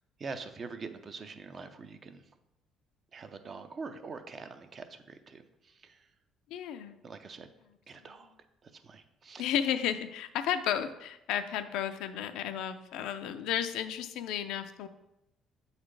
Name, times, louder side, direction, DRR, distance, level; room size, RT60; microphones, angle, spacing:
voice 1, 0.2-2.2 3.1-5.4 5.8-6.0 7.0-7.5 7.9-8.3 8.6-9.4, right 4 dB, 40° right, 8 dB, 0.5 m, -44 dB
voice 2, 6.5-7.0 8.0-8.1 9.4-14.9, left 9 dB, 80° left, 9 dB, 0.4 m, -33 dB
7.9 x 4.0 x 3.3 m, 0.89 s
cardioid pair, 105°, 0 cm